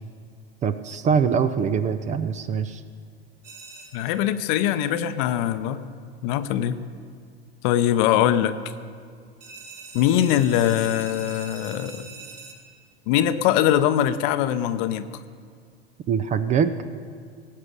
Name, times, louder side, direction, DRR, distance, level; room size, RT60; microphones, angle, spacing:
voice 1, 0.6-2.8 16.1-16.7, right 6 dB, 25° right, 12 dB, 0.5 m, -23 dB
sound 1, 3.4-4.2 9.4-12.5, right 4 dB, 45° right, 3.5 m, -43 dB
voice 2, 3.9-5.9 6.2-6.8 7.6-8.6 9.9-12.1 13.1-15.1, left 11 dB, 50° left, 12 dB, 0.8 m, -22 dB
17.5 x 8.5 x 6.4 m, 2.1 s
hypercardioid pair, 95°, 32 cm